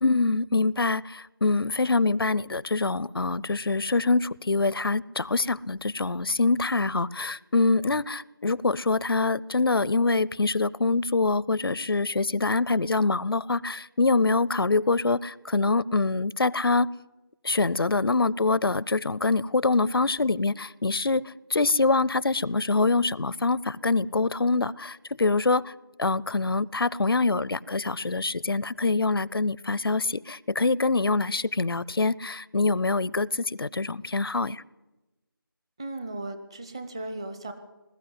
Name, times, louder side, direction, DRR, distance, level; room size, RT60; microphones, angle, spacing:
voice 1, 0.0-16.9 17.4-25.7 26.0-34.6, left 3 dB, 75° left, 22 dB, 0.6 m, -25 dB
voice 2, 35.8-37.5, right 2 dB, 15° right, 8 dB, 0.8 m, -36 dB
20.5 x 14.0 x 9.6 m, 1.1 s
figure-of-eight pair, 170°, 12 cm